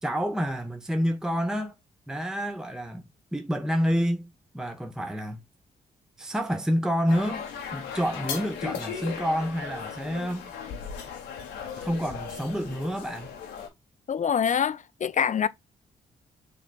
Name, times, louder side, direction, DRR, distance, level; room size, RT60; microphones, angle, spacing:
voice 1, 0.0-1.7 2.1-3.0 3.3-4.3 4.5-5.4 6.2-10.5 11.8-13.3, equal, 5° right, 0.6 m, -28 dB
sound 1, 7.1-13.7, left 7 dB, 85° left, 1.1 m, -37 dB
voice 2, 14.1-15.5, left 7 dB, 45° left, 0.5 m, -25 dB
6.7 x 3.3 x 2.2 m
supercardioid pair, 45°, 18 cm